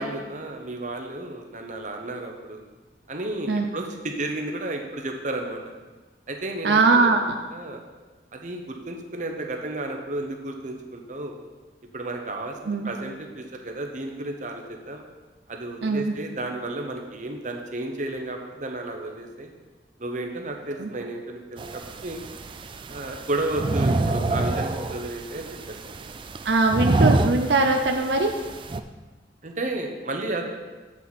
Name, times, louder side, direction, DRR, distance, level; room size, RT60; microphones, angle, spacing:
voice 1, 0.0-2.6 3.1-5.6 6.3-7.2 7.5-7.8 8.3-11.3 11.9-15.0 15.5-19.5 20.0-22.2 22.9-26.2 29.4-30.4, right 2 dB, 45° right, 3 dB, 0.9 m, -32 dB
voice 2, 6.6-7.3 12.7-12.9 15.8-16.0 20.8-20.9 26.5-28.3, right 3 dB, 75° right, 3 dB, 0.6 m, -21 dB
sound 1, 21.6-28.8, right 2 dB, 30° right, 0.3 m, -27 dB
8.0 x 7.2 x 4.2 m, 1.2 s
head